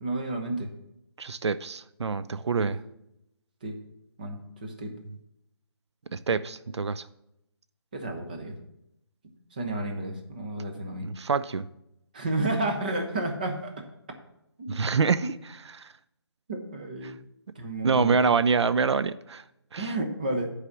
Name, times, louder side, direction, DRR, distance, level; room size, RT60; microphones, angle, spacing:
voice 1, 0.0-0.7 2.6-2.7 3.6-3.8 4.2-4.9 7.9-8.5 9.2-11.1 12.1-13.8 14.6-14.8 16.5-17.2 17.6-18.2 19.8-20.5, right 2 dB, 20° right, 3 dB, 0.7 m, -31 dB
voice 2, 1.2-2.8 6.1-7.1 11.0-11.7 14.7-15.3 15.7-15.9 17.8-19.4 19.7-19.9, right 5 dB, 85° right, 14 dB, 0.5 m, -26 dB
9.8 x 4.9 x 6.0 m, 0.82 s
hypercardioid pair, 180°, 14 cm